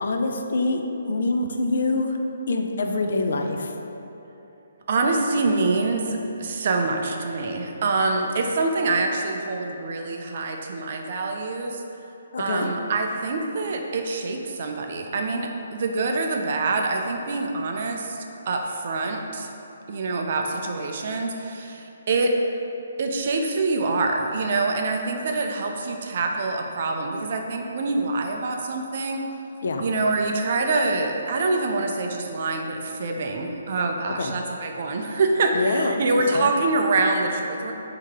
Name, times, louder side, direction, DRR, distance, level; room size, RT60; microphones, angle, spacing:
voice 1, 0.0-2.2 2.5-3.7 12.3-12.7 29.6-29.8 34.1-34.3 35.5-36.0 36.3-36.5, left 2 dB, 60° left, 4 dB, 0.4 m, -25 dB
voice 2, 4.9-11.8 12.4-19.5 19.9-22.4 23.0-29.2 29.8-37.7, right 3 dB, 40° right, 3 dB, 0.4 m, -25 dB
3.6 x 2.8 x 4.7 m, 3.0 s
hypercardioid pair, 170°, 0 cm